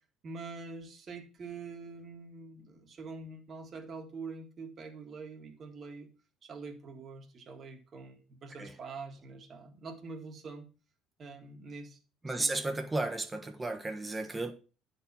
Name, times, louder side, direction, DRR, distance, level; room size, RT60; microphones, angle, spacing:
voice 1, 0.2-6.1 6.4-10.7 11.2-12.0 12.3-12.6, right 4 dB, 35° right, 1.8 m, -45 dB
voice 2, 12.2-14.5, right 2 dB, 15° right, 1.2 m, -33 dB
9.9 x 4.7 x 5.6 m
cardioid pair, 135°, 0 cm